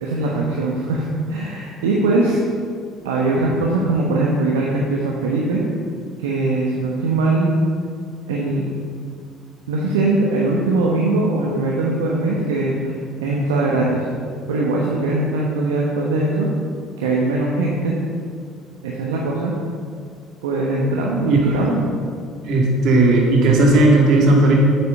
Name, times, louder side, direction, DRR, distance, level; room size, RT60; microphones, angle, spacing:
voice 1, 0.0-2.4 3.0-5.6 6.2-7.5 8.3-8.6 9.7-14.1 14.5-16.5 17.0-18.0 18.8-19.5 20.4-21.8, right 2 dB, 80° right, -3 dB, 1.1 m, -21 dB
voice 2, 21.2-21.6 22.5-24.5, right 2 dB, 60° right, -1 dB, 2.3 m, -15 dB
9.0 x 7.5 x 5.7 m, 2.1 s
hypercardioid pair, 55°, 0 cm